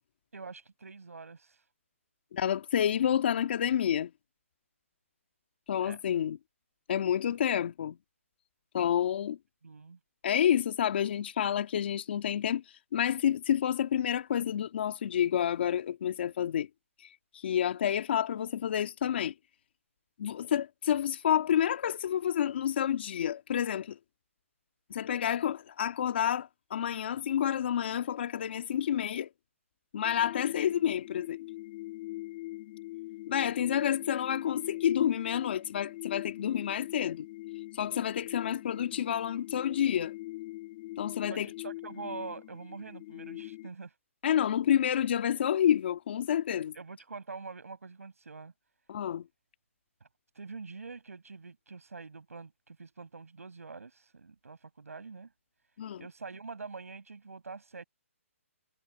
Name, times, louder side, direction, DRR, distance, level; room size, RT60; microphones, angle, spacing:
voice 1, 0.3-1.6 5.8-6.0 9.6-10.0 41.3-44.0 46.7-48.5 50.3-55.3 56.0-57.8, right 4 dB, 90° right, 6.0 m, -45 dB
voice 2, 2.3-4.1 5.7-6.4 6.9-8.0 8.7-9.4 10.2-12.6 12.9-16.7 17.0-19.3 20.2-24.0 24.9-29.3 29.9-31.4 33.3-37.3 37.7-40.1 41.0-41.5 44.2-46.7 48.9-49.3 55.8-56.1, left 9 dB, 50° left, 1.9 m, -29 dB
sound 1, 30.0-43.7, left 19 dB, 30° left, 2.8 m, -43 dB
hypercardioid pair, 155°, 8 cm